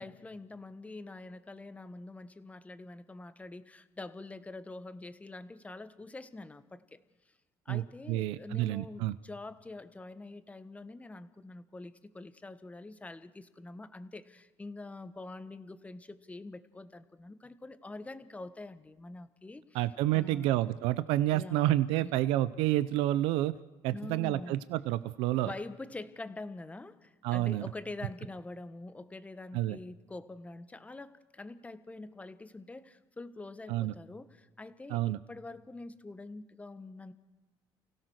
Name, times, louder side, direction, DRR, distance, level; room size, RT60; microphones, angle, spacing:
voice 1, 0.0-7.0 7.6-19.8 20.1-20.5 21.2-22.1 23.9-24.6 25.4-37.1, left 2 dB, 15° left, 12 dB, 1.4 m, -45 dB
voice 2, 8.1-9.2 19.7-23.6 23.8-25.5 27.2-27.7 29.5-29.8 33.7-33.9 34.9-35.2, right 15 dB, 90° right, 15 dB, 0.7 m, -29 dB
29.5 x 17.0 x 6.5 m, 1.2 s
cardioid pair, 105°, 9 cm